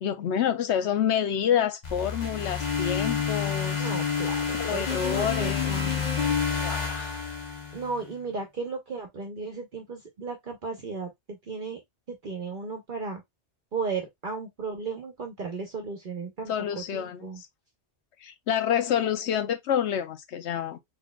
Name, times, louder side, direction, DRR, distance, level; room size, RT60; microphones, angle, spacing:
voice 1, 0.0-3.9 4.6-5.7 6.6-7.2 16.5-17.5 18.2-20.8, left 9 dB, 80° left, 1.0 m, -28 dB
sound 1, 1.8-8.0, left 6 dB, 40° left, 1.0 m, -29 dB
voice 2, 3.8-6.1 7.7-11.8 12.1-13.2 13.7-16.5 16.9-17.4, right 4 dB, 50° right, 0.9 m, -35 dB
4.0 x 3.2 x 2.3 m
omnidirectional pair, 1.1 m